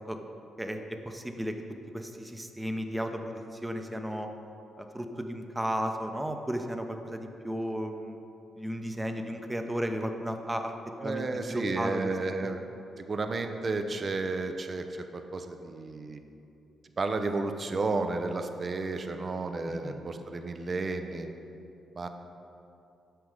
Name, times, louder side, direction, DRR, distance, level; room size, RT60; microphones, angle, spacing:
voice 1, 0.6-1.5 1.9-4.3 4.8-8.2 8.6-10.7 11.0-12.1 12.4-12.5 19.7-20.0, equal, 15° right, 5 dB, 0.8 m, -34 dB
voice 2, 11.0-12.7 13.0-16.2 17.0-21.3 21.9-22.1, right 3 dB, 45° right, 7 dB, 0.7 m, -32 dB
7.8 x 6.2 x 5.0 m, 2.7 s
hypercardioid pair, 45°, 0 cm